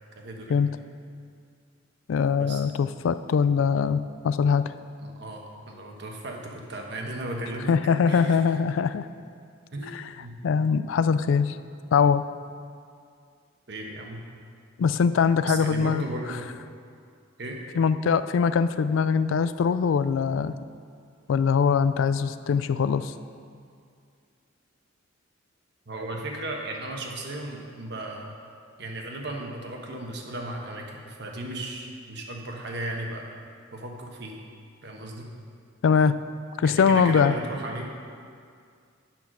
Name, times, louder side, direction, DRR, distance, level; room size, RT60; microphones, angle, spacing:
voice 1, 0.1-0.5 2.4-2.6 5.0-7.7 8.1-8.4 9.7-10.4 13.7-14.2 15.4-16.5 17.4-17.6 25.9-28.4 28.8-33.3 33.7-34.4 34.8-35.3 36.6-37.9, right 1 dB, 60° right, 1 dB, 1.2 m, -36 dB
voice 2, 2.1-4.7 7.7-9.1 9.9-10.0 10.4-11.6 11.9-12.2 14.8-16.0 17.8-20.5 21.3-23.1 35.8-36.2 36.6-37.3, left 6 dB, 80° left, 13 dB, 0.3 m, -22 dB
8.9 x 5.8 x 6.1 m, 2.2 s
head